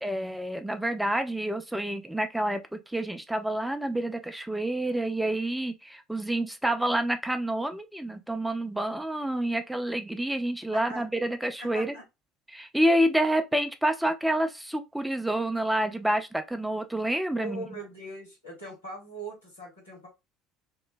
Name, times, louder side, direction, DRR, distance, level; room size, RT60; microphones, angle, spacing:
voice 1, 0.0-11.9 12.5-17.7, right 1 dB, 5° right, 0.4 m, -28 dB
voice 2, 10.7-11.0 11.6-12.0 17.3-20.1, right 1 dB, 85° left, 1.4 m, -41 dB
2.9 x 2.1 x 2.4 m
figure-of-eight pair, 60°, 0 cm